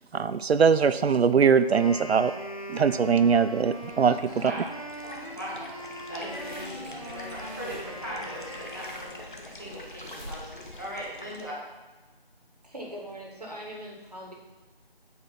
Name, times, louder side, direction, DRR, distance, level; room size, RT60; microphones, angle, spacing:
voice 1, 0.1-2.3 2.7-4.5, right 6 dB, 85° right, 12 dB, 0.5 m, -22 dB
Wind instrument woodwind instrument, 1.7-9.6, equal, 35° left, 0.5 m, -42 dB
sound 1, 3.5-11.4, left 1 dB, 55° left, 1.1 m, -44 dB
sound 2, 6.0-11.3, equal, 15° right, 1.6 m, -48 dB
voice 2, 6.1-9.1 9.5-11.5, equal, 20° left, -6 dB, 1.2 m, -39 dB
voice 3, 12.6-14.3, equal, 40° right, -1 dB, 1.6 m, -41 dB
8.3 x 4.4 x 5.7 m, 1.3 s
figure-of-eight pair, 180°, 31 cm